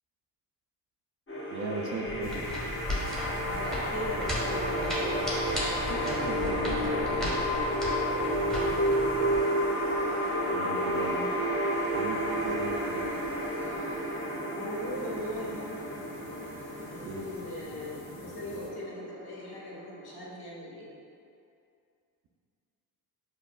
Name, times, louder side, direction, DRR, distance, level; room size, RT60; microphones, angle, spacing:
sound 1, 1.3-20.2, equal, 25° left, 0.9 m, -31 dB
voice 1, 1.5-2.5 5.9-7.4 10.5-11.3 11.9-13.1 17.0-17.3, right 3 dB, 40° right, -1 dB, 0.5 m, -37 dB
sound 2, 2.1-9.4, equal, ahead, 1.0 m, -36 dB
sound 3, 2.2-18.7, left 1 dB, 65° left, 0.9 m, -48 dB
voice 2, 3.4-5.3 8.4-9.7 14.5-15.8 16.9-20.9, left 1 dB, 50° left, -5 dB, 1.0 m, -39 dB
5.3 x 2.0 x 2.2 m, 2.4 s
hypercardioid pair, 45°, 48 cm